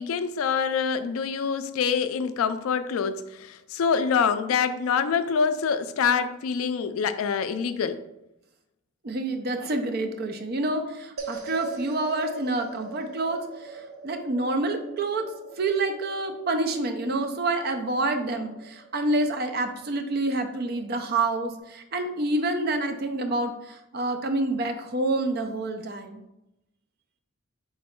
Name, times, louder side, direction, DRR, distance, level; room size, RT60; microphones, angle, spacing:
voice 1, 0.0-8.0, left 6 dB, 70° left, 11 dB, 0.3 m, -25 dB
voice 2, 9.0-15.3 15.6-26.2, right 2 dB, 45° right, 6 dB, 0.4 m, -28 dB
sound 1, 11.2-21.6, right 4 dB, 80° right, 0.7 m, -43 dB
3.7 x 3.1 x 4.4 m, 0.88 s
head